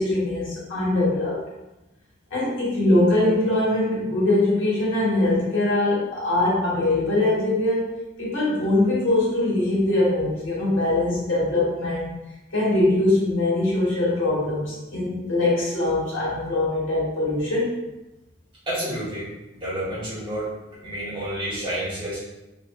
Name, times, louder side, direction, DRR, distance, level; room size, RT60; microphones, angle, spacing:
voice 1, 0.0-1.4 2.3-7.9 8.2-12.1 12.5-17.8, left 2 dB, 70° left, -7 dB, 1.2 m, -22 dB
voice 2, 18.7-19.3 19.5-20.5 20.8-22.2, right 1 dB, 25° right, -9 dB, 1.1 m, -29 dB
3.1 x 2.5 x 2.2 m, 1.0 s
head